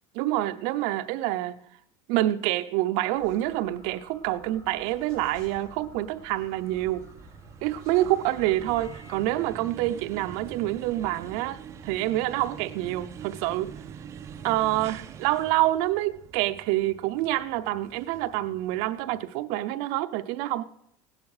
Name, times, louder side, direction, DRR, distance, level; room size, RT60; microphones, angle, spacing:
voice 1, 0.2-1.6 2.1-7.1 7.6-13.7 14.4-20.6, right 15 dB, 65° right, 0.7 m, -27 dB
sound 1, 3.2-9.2, left 3 dB, 45° left, 4.2 m, -52 dB
sound 2, 4.7-19.2, right 8 dB, 25° right, 0.5 m, -45 dB
16.5 x 10.5 x 4.9 m
cardioid pair, 165°, 11 cm